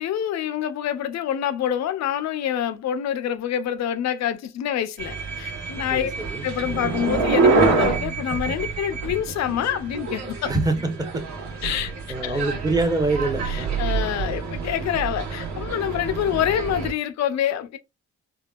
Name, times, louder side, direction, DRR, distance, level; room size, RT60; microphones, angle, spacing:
voice 1, 0.0-6.1 6.4-10.5 11.6-11.9 12.2-12.4 13.4-17.8, left 10 dB, 60° left, 0.5 m, -26 dB
sound 1, 5.0-16.9, right 4 dB, 65° right, 1.1 m, -26 dB
voice 2, 5.9-6.4 10.5-11.2 12.1-13.8, right 2 dB, 15° right, 0.8 m, -25 dB
3.5 x 2.3 x 2.3 m
cardioid pair, 90°, 30 cm